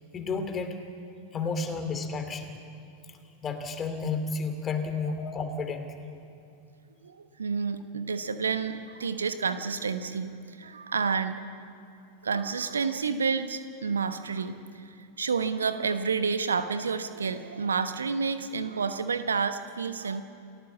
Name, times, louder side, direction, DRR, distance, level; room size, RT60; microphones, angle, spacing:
voice 1, 0.1-0.8 1.3-2.5 3.1-6.1, left 4 dB, 25° left, 7 dB, 3.0 m, -32 dB
voice 2, 7.0-10.3 10.6-11.4 12.2-14.6 15.2-20.2, right 5 dB, 70° right, 10 dB, 1.2 m, -29 dB
30.0 x 15.5 x 7.4 m, 2.7 s
figure-of-eight pair, 90°, 0 cm